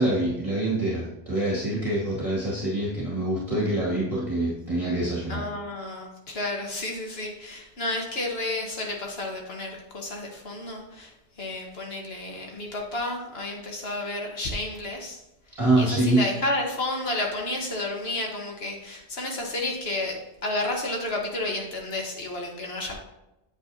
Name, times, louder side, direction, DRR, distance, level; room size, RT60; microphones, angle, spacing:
voice 1, 0.0-5.5 15.6-16.2, right 1 dB, 30° right, -6 dB, 1.9 m, -25 dB
voice 2, 5.3-11.1 11.4-15.2 15.8-22.9, left 2 dB, 65° left, 1 dB, 1.7 m, -31 dB
8.6 x 7.8 x 2.8 m, 0.91 s
omnidirectional pair, 1.1 m